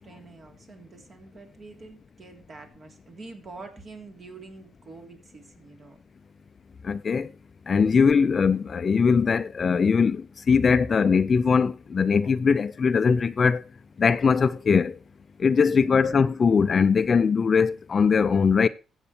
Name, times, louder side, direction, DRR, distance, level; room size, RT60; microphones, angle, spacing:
voice 1, 0.0-6.0 15.7-16.2, right 3 dB, 45° right, 3.3 m, -46 dB
voice 2, 6.8-7.3 7.7-10.2 10.5-13.6 14.0-14.9 15.4-18.7, left 5 dB, 40° left, 0.5 m, -21 dB
12.5 x 8.1 x 4.4 m
cardioid pair, 90°, 0 cm